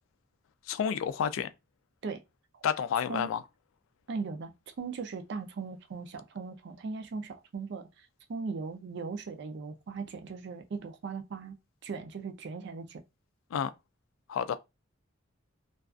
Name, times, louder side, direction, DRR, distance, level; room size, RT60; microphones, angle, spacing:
voice 1, 0.7-1.5 2.6-3.4 13.5-13.7 14.3-14.6, left 8 dB, 80° left, 0.3 m, -30 dB
voice 2, 4.1-4.5 4.8-7.9 8.3-11.6 11.8-13.0, right 4 dB, 60° right, 0.4 m, -38 dB
2.3 x 2.3 x 2.4 m
head